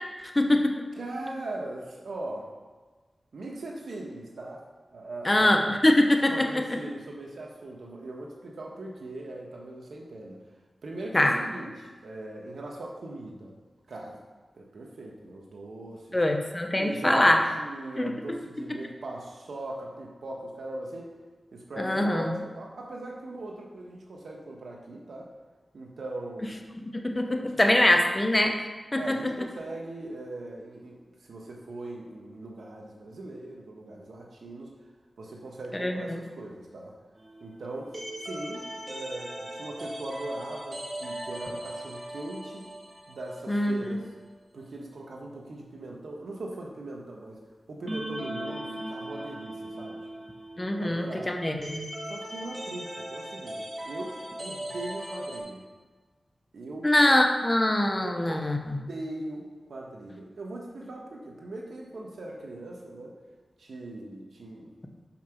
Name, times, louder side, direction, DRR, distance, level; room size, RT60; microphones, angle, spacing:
voice 1, 0.3-0.7 5.2-6.5 11.1-11.3 16.1-17.4 18.0-18.1 21.8-22.3 26.9-28.5 28.9-29.2 35.8-35.9 43.5-44.0 50.6-51.9 56.8-58.8, left 1 dB, 25° left, 3 dB, 1.0 m, -23 dB
voice 2, 1.0-2.5 3.3-4.6 4.9-5.6 6.3-10.4 10.8-13.6 13.9-14.2 14.5-16.2 16.8-21.1 21.5-25.3 25.7-26.5 27.2-27.8 28.9-34.7 35.2-36.9 37.4-37.9 38.2-42.7 43.1-44.1 44.5-47.4 47.7-50.3 50.8-51.4 52.1-55.6 56.5-56.9 58.0-58.4 58.9-63.2 63.6-64.7, right 2 dB, 85° right, -1 dB, 1.4 m, -40 dB
sound 1, 37.2-43.9 44.1-44.2 47.9-55.4, right 1 dB, 45° right, 2.0 m, -39 dB
6.0 x 5.9 x 5.9 m, 1.3 s
cardioid pair, 55°, 0 cm